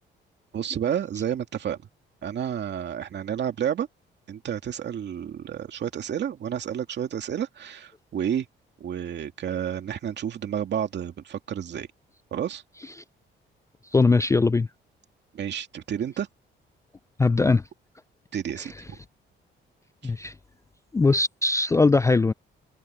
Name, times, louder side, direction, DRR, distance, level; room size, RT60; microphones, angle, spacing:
voice 1, 0.5-1.8 2.2-3.9 4.3-8.5 8.8-11.9 12.3-12.6 15.3-16.3 18.3-19.0 20.0-20.1, right 9 dB, 60° right, 2.4 m, -30 dB
voice 2, 13.9-14.7 17.2-17.6 20.0-20.3 20.9-22.3, left 3 dB, 15° left, 0.3 m, -20 dB
cardioid pair, 90°, 20 cm